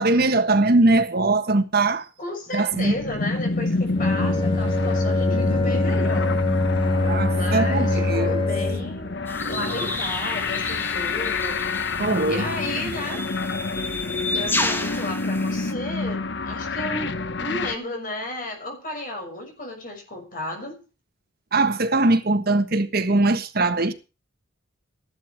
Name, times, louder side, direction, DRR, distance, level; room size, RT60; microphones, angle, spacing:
voice 1, 0.0-2.1 2.5-2.9 7.0-8.5 12.0-12.5 12.8-12.9 21.5-23.9, right 2 dB, 50° right, 1.5 m, -21 dB
voice 2, 2.2-6.4 7.3-13.3 14.3-20.8, left 1 dB, 45° left, 6.2 m, -33 dB
sound 1, 2.7-17.7, left 3 dB, 60° left, 1.0 m, -28 dB
Bowed string instrument, 3.9-9.0, left 2 dB, 25° left, 3.3 m, -23 dB
sound 2, 9.3-15.7, left 2 dB, 10° left, 1.5 m, -31 dB
15.5 x 12.0 x 4.6 m
head